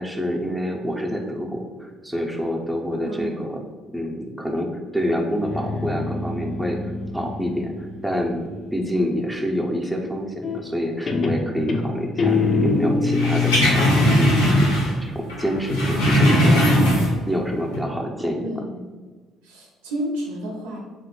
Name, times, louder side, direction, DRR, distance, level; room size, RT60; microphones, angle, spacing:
voice 1, 0.0-3.6 3.9-6.8 7.1-13.9 14.2-14.7 15.0-16.6 17.3-18.4, equal, 10° right, 1 dB, 0.5 m, -27 dB
voice 2, 3.0-3.4 18.4-18.8 19.4-20.8, equal, 80° right, -2 dB, 0.5 m, -31 dB
Guitar, 5.3-8.9 10.4-10.8 11.1-14.0, left 3 dB, 45° left, 0.4 m, -24 dB
sound 1, 13.1-15.0 15.3-17.3 17.7-17.8, equal, 85° left, 0.6 m, -18 dB
3.3 x 2.1 x 3.0 m, 1.3 s
hypercardioid pair, 50°, 0 cm